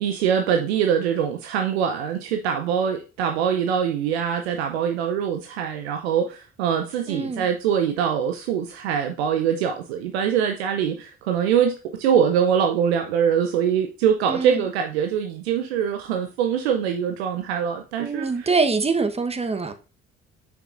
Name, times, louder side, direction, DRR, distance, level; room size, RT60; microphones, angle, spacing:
voice 1, 0.0-18.5, right 8 dB, 80° right, 0.7 m, -23 dB
voice 2, 7.1-7.5 14.3-14.7 18.0-19.7, right 4 dB, 20° right, 1.0 m, -24 dB
8.2 x 5.9 x 2.5 m
hypercardioid pair, 50°, 32 cm